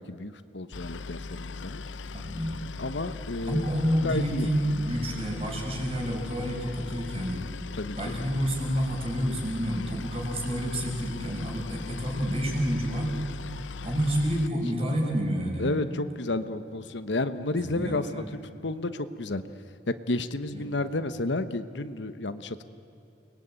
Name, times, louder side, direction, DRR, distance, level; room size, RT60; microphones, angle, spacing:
voice 1, 0.0-1.8 2.8-3.7 4.0-4.5 7.7-8.1 15.6-18.2 18.6-19.4 20.1-22.6, left 2 dB, 70° left, 11 dB, 1.1 m, -31 dB
Boat Water vehicle, 0.7-14.5, left 3 dB, 90° left, 0.7 m, -39 dB
voice 2, 2.1-2.6 3.4-7.4 8.0-13.2 13.8-15.7 17.6-18.3 20.5-20.7, equal, 35° right, -1 dB, 6.1 m, -29 dB
30.0 x 21.0 x 9.0 m, 2.9 s
head